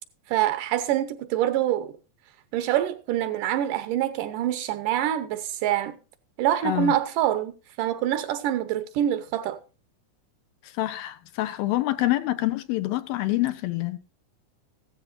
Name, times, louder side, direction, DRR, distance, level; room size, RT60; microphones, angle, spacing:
voice 1, 0.3-1.9 2.5-6.0 6.4-7.5 7.8-9.6, right 12 dB, 75° right, 2.3 m, -25 dB
voice 2, 6.6-7.0 10.6-14.0, left 16 dB, 90° left, 2.7 m, -26 dB
15.5 x 13.5 x 2.6 m
omnidirectional pair, 4.1 m